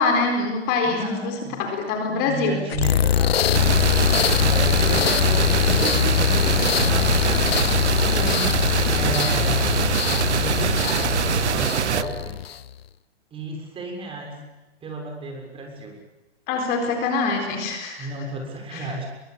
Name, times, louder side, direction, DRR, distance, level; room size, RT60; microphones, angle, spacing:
voice 1, 0.0-2.6 7.0-7.1 16.5-18.1 18.7-18.9, left 4 dB, 30° left, 4 dB, 4.1 m, -24 dB
voice 2, 0.8-1.6 2.1-3.8 4.3-7.6 7.9-8.6 8.9-9.9 10.2-12.4 13.3-14.4 14.8-16.0 18.0-19.1, right 2 dB, 15° right, 2 dB, 6.6 m, -33 dB
sound 1, 2.7-12.7, left 10 dB, 60° left, 1.1 m, -22 dB
sound 2, 3.5-12.0, right 8 dB, 80° right, 1.0 m, -24 dB
26.5 x 23.5 x 8.2 m, 1.1 s
hypercardioid pair, 140°, 34 cm